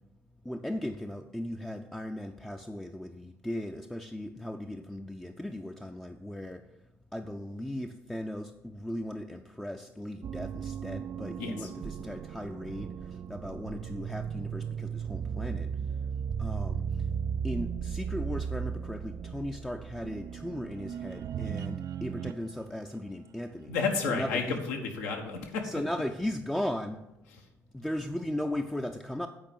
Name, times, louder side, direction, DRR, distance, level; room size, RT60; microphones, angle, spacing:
voice 1, 0.5-6.6 7.1-12.9 13.3-15.7 16.4-16.8 17.4-23.7 24.1-24.6 25.6-27.0 27.7-29.3, left 1 dB, 5° left, 4 dB, 0.6 m, -37 dB
sound 1, 10.2-22.5, right 7 dB, 40° right, 0.3 m, -36 dB
voice 2, 23.7-25.6, left 5 dB, 75° left, 3 dB, 1.3 m, -31 dB
8.9 x 5.0 x 7.0 m, 0.95 s
figure-of-eight pair, 50°, 9 cm